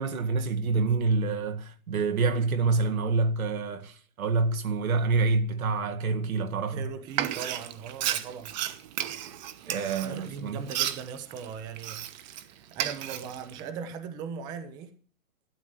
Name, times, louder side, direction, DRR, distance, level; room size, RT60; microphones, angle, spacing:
voice 1, 0.0-6.9 9.7-10.6, right 4 dB, 85° right, 1.9 m, -27 dB
voice 2, 6.7-8.6 10.0-15.0, right 6 dB, 10° right, 0.6 m, -39 dB
Frying (food), 7.1-12.4 12.7-13.6, right 11 dB, 35° right, 1.0 m, -33 dB
12.5 x 9.9 x 8.0 m
hypercardioid pair, 155°, 41 cm